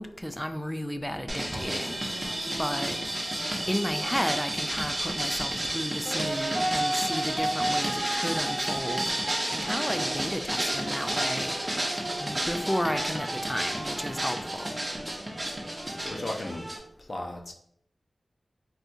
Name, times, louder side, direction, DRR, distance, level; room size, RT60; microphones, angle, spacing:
voice 1, 0.0-2.2 2.6-3.0 3.7-9.1 9.5-11.5 12.2-14.7, equal, 5° left, 8 dB, 0.3 m, -33 dB
sound 1, 1.3-16.8, right 1 dB, 30° right, 0.8 m, -30 dB
voice 2, 16.0-16.7 17.0-17.5, left 1 dB, 55° left, 1 dB, 0.6 m, -35 dB
4.1 x 2.4 x 2.6 m, 0.68 s
wide cardioid pair, 55°, 0 cm